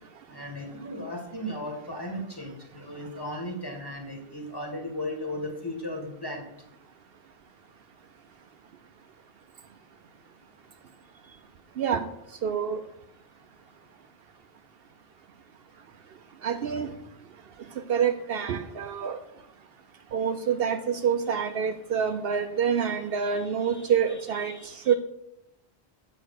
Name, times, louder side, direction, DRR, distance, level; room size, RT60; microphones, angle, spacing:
voice 1, 0.3-6.5 23.2-23.9 24.4-25.0, left 1 dB, 20° left, 1 dB, 1.8 m, -36 dB
voice 2, 12.4-12.8 16.4-16.9 17.9-19.2 20.1-25.0, right 7 dB, 65° right, 8 dB, 0.8 m, -27 dB
7.9 x 5.3 x 6.5 m, 0.81 s
omnidirectional pair, 1.1 m